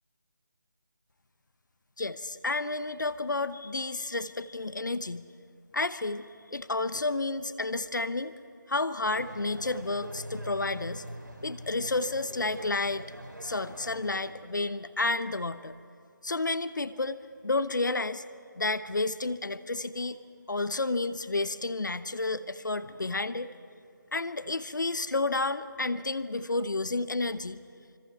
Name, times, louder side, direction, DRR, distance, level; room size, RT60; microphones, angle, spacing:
voice 1, 2.0-5.3 5.7-8.3 8.7-11.0 11.4-13.0 13.4-15.7 16.2-18.2 18.6-20.2 20.5-23.5 24.1-27.6, left 2 dB, 70° left, 14 dB, 0.9 m, -31 dB
sound 1, 9.0-14.3, right 1 dB, 80° right, 3.5 m, -43 dB
26.0 x 25.5 x 4.6 m, 2.4 s
figure-of-eight pair, 160°, 11 cm